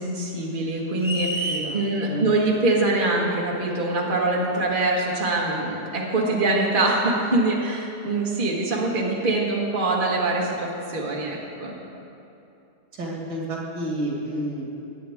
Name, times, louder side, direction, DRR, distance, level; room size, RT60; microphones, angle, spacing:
voice 1, 0.0-11.7, right 2 dB, 30° right, -3 dB, 1.6 m, -24 dB
sound 1, 1.0-1.7, right 1 dB, 5° right, 0.4 m, -28 dB
voice 2, 1.4-2.2 12.9-14.6, right 1 dB, 85° right, -3 dB, 2.4 m, -30 dB
19.0 x 8.6 x 3.6 m, 2.8 s
omnidirectional pair, 1.8 m